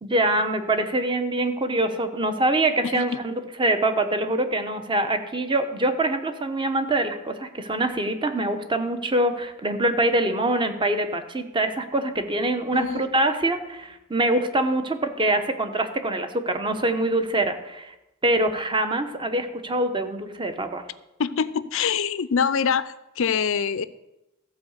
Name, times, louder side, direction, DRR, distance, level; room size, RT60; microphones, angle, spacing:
voice 1, 0.0-17.9 18.2-20.8, right 1 dB, 20° right, 8 dB, 0.9 m, -24 dB
voice 2, 12.7-13.0 21.2-23.8, left 6 dB, 65° left, 15 dB, 0.5 m, -25 dB
14.0 x 4.8 x 7.9 m, 0.94 s
head